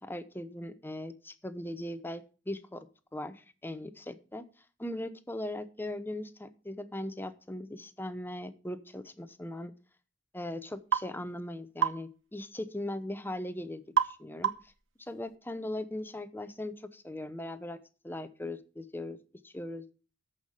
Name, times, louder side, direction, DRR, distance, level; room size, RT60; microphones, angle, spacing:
voice 1, 0.0-2.9 3.1-4.4 4.8-9.7 10.3-14.7 15.0-19.2 19.4-19.9, left 1 dB, 10° left, 11 dB, 0.8 m, -39 dB
sound 1, 10.9-11.1 11.8-12.0 14.0-14.2 14.4-14.8, right 8 dB, 75° right, 1.0 m, -27 dB
14.0 x 5.7 x 6.5 m, 0.37 s
head